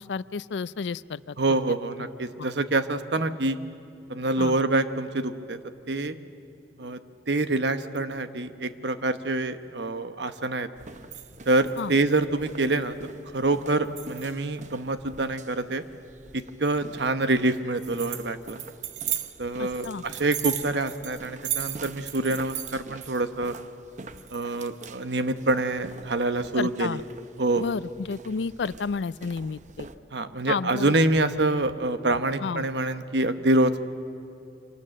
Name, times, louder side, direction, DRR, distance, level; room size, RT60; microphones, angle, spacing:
voice 1, 0.0-1.4 2.0-2.1 2.4-2.5 4.4-4.5 11.8-11.9 19.6-20.0 26.6-27.0 27.6-29.9 30.5-30.9 32.4-32.6, left 5 dB, 90° left, 18 dB, 0.4 m, -31 dB
voice 2, 1.4-3.6 4.1-5.6 5.9-6.1 6.8-7.0 7.3-10.7 11.5-13.0 13.3-15.8 16.3-18.6 19.4-23.5 24.3-27.0 27.4-27.6 30.1-33.8, right 2 dB, 80° right, 10 dB, 1.0 m, -26 dB
sound 1, 10.8-30.0, right 8 dB, 45° right, 0.8 m, -39 dB
25.5 x 18.5 x 7.6 m, 2.8 s
head